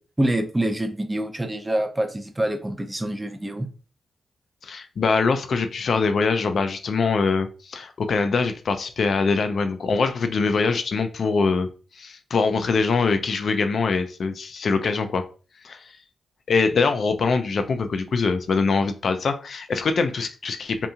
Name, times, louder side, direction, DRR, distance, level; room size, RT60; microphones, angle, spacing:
voice 1, 0.2-3.7, right 1 dB, 15° right, 6 dB, 0.4 m, -26 dB
voice 2, 4.6-11.7 12.0-15.2 15.6-15.8 16.5-20.9, left 4 dB, 60° left, 7 dB, 0.3 m, -23 dB
2.7 x 2.7 x 2.3 m, 0.36 s
cardioid pair, 70°, 0 cm